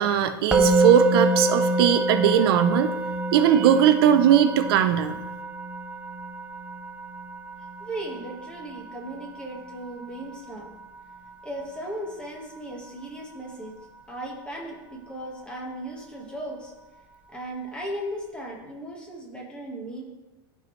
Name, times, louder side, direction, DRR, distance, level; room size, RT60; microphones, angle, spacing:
voice 1, 0.0-2.9 3.3-5.2, right 10 dB, 70° right, 9 dB, 0.6 m, -19 dB
Musical instrument, 0.5-11.6, right 1 dB, 10° right, 0.5 m, -27 dB
voice 2, 7.8-10.7 11.4-13.7 14.1-16.7 17.3-20.0, right 1 dB, 5° left, -1 dB, 1.5 m, -36 dB
13.5 x 4.6 x 3.2 m, 1.1 s
supercardioid pair, 145°, 13 cm